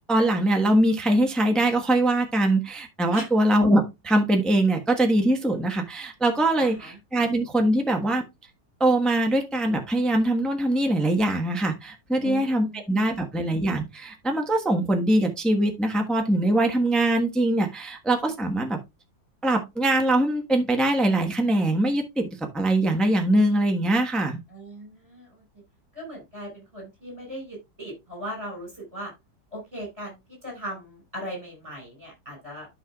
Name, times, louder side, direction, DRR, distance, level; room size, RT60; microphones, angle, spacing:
voice 1, 0.1-8.2 8.8-18.8 19.4-24.4, right 1 dB, ahead, 1.0 m, -22 dB
voice 2, 6.6-7.0 12.2-12.8 24.5-25.4 25.9-29.1 29.5-30.2 30.4-32.7, right 1 dB, 20° right, 5.4 m, -38 dB
13.0 x 5.6 x 2.3 m
omnidirectional pair, 1.9 m